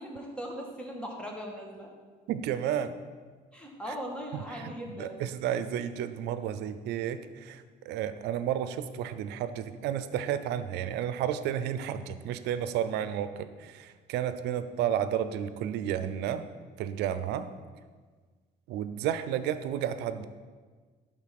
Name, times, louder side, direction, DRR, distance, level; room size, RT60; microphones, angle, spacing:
voice 1, 0.0-1.9 3.5-5.2, equal, 5° left, 0 dB, 1.7 m, -39 dB
voice 2, 2.3-3.0 4.5-16.5 16.8-17.5 18.7-20.3, right 10 dB, 85° right, 12 dB, 0.6 m, -32 dB
11.5 x 3.8 x 5.9 m, 1.5 s
cardioid pair, 110°, 17 cm